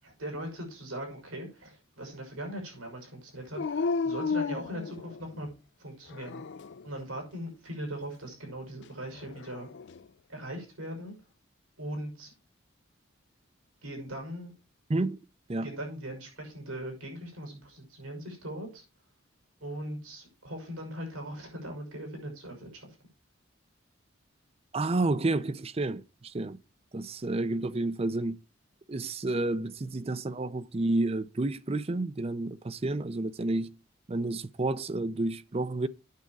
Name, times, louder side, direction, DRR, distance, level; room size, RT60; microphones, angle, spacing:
voice 1, 0.0-5.5 5.8-6.4 6.8-9.7 10.3-11.1 11.8-12.3 13.8-14.5 15.6-18.8 19.6-22.9, right 1 dB, 90° right, 6.2 m, -40 dB
Dog, 3.5-5.5 6.1-6.9 9.2-10.0, left 4 dB, 55° left, 0.4 m, -33 dB
voice 2, 14.9-15.2 15.5-15.7 24.7-26.6 26.9-28.4 28.9-33.8 34.1-35.9, right 2 dB, 30° right, 0.5 m, -30 dB
9.4 x 7.3 x 4.7 m
head